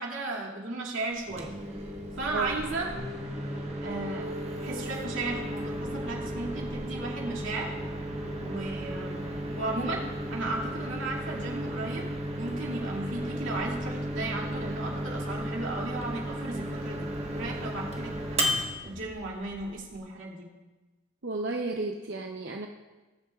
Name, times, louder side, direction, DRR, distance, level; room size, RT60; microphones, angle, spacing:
voice 1, 0.0-1.5 2.2-2.9 3.8-4.3 4.6-7.7 8.4-9.2 9.6-12.1 12.4-18.6 18.8-20.4, right 2 dB, 90° right, -3 dB, 2.5 m, -35 dB
Microwave oven, 1.2-20.0, equal, 35° right, 1.4 m, -34 dB
voice 2, 2.3-2.6 21.2-22.7, right 3 dB, 65° right, 1 dB, 0.8 m, -33 dB
20.0 x 8.8 x 2.4 m, 1.2 s
head